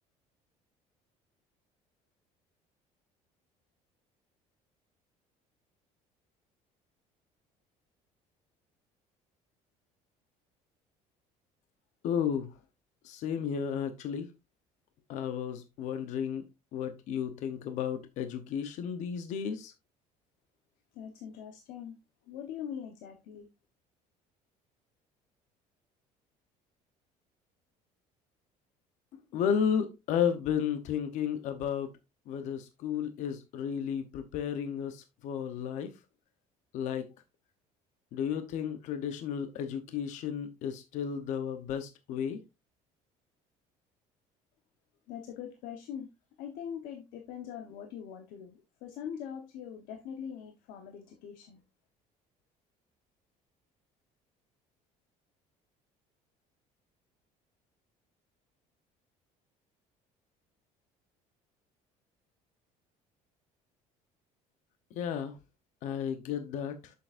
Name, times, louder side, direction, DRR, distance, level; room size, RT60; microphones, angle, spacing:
voice 1, 12.0-12.5 13.0-14.3 15.1-16.5 16.7-19.7 29.3-31.9 32.3-35.9 36.7-37.1 38.1-42.4 64.9-65.3 65.8-66.9, left 8 dB, 60° left, 8 dB, 0.9 m, -33 dB
voice 2, 20.9-22.0 22.3-23.5 45.1-46.1 46.4-51.6, left 8 dB, 85° left, 5 dB, 1.1 m, -42 dB
7.7 x 6.9 x 2.5 m, 0.24 s
cardioid pair, 155°, 14 cm